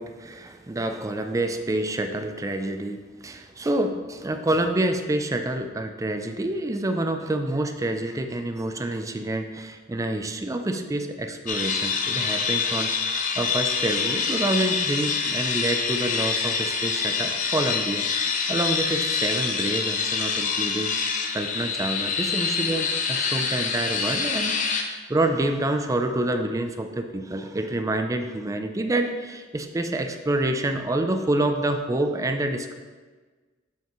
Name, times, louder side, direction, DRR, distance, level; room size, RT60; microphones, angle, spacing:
voice 1, 0.0-32.7, right 1 dB, 15° right, 6 dB, 0.4 m, -27 dB
sound 1, 11.5-24.8, left 5 dB, 40° left, 0.6 m, -26 dB
7.2 x 5.7 x 3.0 m, 1.4 s
head